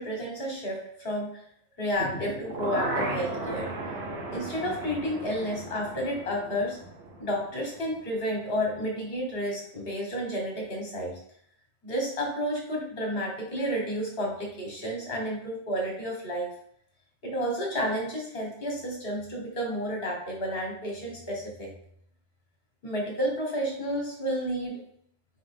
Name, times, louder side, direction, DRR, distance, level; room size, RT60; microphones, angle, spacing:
voice 1, 0.0-1.4 1.8-3.7 4.3-6.8 7.2-11.2 11.8-16.5 17.2-21.7 22.8-24.8, equal, 60° left, 0 dB, 1.6 m, -31 dB
sound 1, 1.9-8.0 8.3-8.4, right 2 dB, 70° right, 1.2 m, -35 dB
4.3 x 3.5 x 3.5 m, 0.66 s
omnidirectional pair, 1.1 m